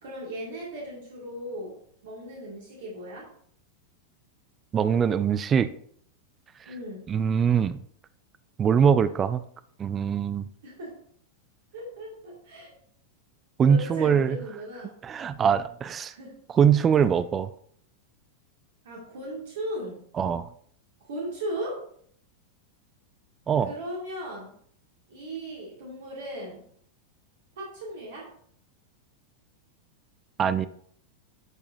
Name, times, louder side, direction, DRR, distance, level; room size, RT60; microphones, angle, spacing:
voice 1, 0.0-1.8 2.0-3.3 6.6-7.1 10.6-10.9 11.7-12.7 13.7-15.0 16.1-16.4 18.8-20.0 21.1-21.8 23.6-24.5 25.1-26.6 27.6-28.3, right 1 dB, 60° right, -3 dB, 2.1 m, -37 dB
voice 2, 4.7-5.7 6.6-6.7 7.1-7.8 8.6-9.4 9.8-10.5 13.6-14.4 15.0-16.1 16.5-17.5 20.2-20.5 23.5-23.7 30.4-30.7, right 7 dB, 25° right, 14 dB, 0.3 m, -22 dB
10.5 x 4.8 x 2.6 m, 0.63 s
figure-of-eight pair, 90°, 0 cm